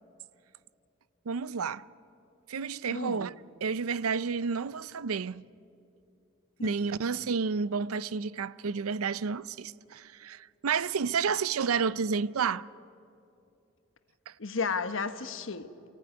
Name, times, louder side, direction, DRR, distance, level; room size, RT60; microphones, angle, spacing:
voice 1, 1.3-1.8 2.5-3.3 3.6-5.4 6.6-12.7 14.3-14.4, right 5 dB, 90° right, 0.5 m, -30 dB
voice 2, 2.9-3.3 6.6-6.7 14.4-15.9, left 5 dB, 65° left, 1.2 m, -33 dB
29.5 x 15.5 x 9.6 m
head